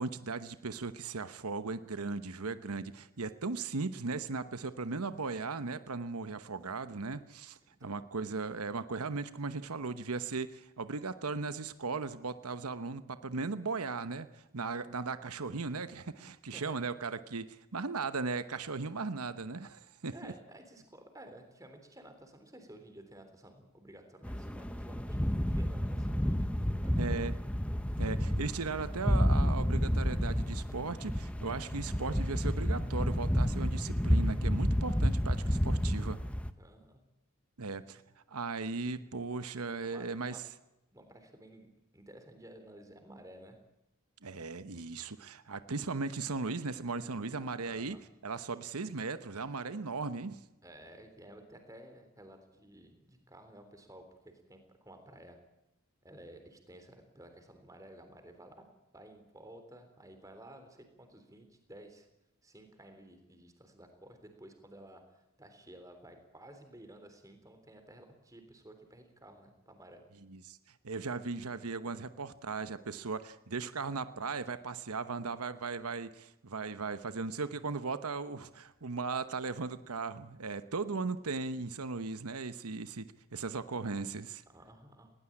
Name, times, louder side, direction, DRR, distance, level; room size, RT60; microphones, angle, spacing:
voice 1, 0.0-20.3 27.0-27.3 28.0-36.2 37.6-38.0 38.3-40.4 44.2-48.0 48.2-50.4 70.3-70.6 70.8-83.1 83.3-84.4, right 4 dB, 85° right, 12 dB, 1.0 m, -37 dB
voice 2, 20.1-27.2 36.6-37.0 39.6-40.4 40.9-43.6 47.6-48.0 50.6-55.4 56.0-58.6 58.9-62.1 62.4-65.0 65.4-70.0 84.5-85.1, right 1 dB, 15° right, 6 dB, 3.6 m, -54 dB
sound 1, 24.2-36.5, equal, 5° left, 0.9 m, -30 dB
20.0 x 18.5 x 8.7 m, 0.90 s
head